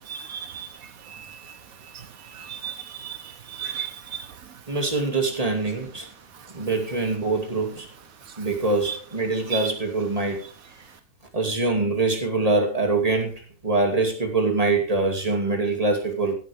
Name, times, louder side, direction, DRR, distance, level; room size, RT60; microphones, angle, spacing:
voice 1, 0.1-0.7 2.5-3.2 3.5-4.2 8.9-9.0 9.5-9.6, right 8 dB, 80° right, 1.4 m, -33 dB
voice 2, 4.7-6.1 6.5-7.9 8.4-10.4 11.3-13.3 13.6-16.3, right 3 dB, 25° right, 2.7 m, -24 dB
15.5 x 9.2 x 3.5 m
omnidirectional pair, 1.4 m